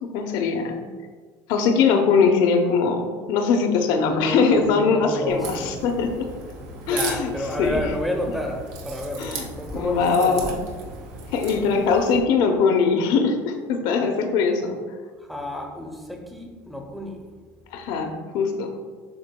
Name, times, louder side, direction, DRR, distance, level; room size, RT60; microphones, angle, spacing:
voice 1, 0.0-0.8 1.5-6.3 6.9-7.3 7.6-7.8 9.2-9.5 9.7-10.6 11.3-14.8 17.7-18.8, left 5 dB, 65° left, 5 dB, 0.8 m, -21 dB
voice 2, 4.1-5.8 6.9-10.4 15.2-17.2, equal, ahead, 3 dB, 0.9 m, -30 dB
Crack, 5.3-12.2, right 3 dB, 75° right, 1.4 m, -37 dB
11.5 x 3.9 x 2.3 m, 1.5 s
cardioid pair, 130°, 8 cm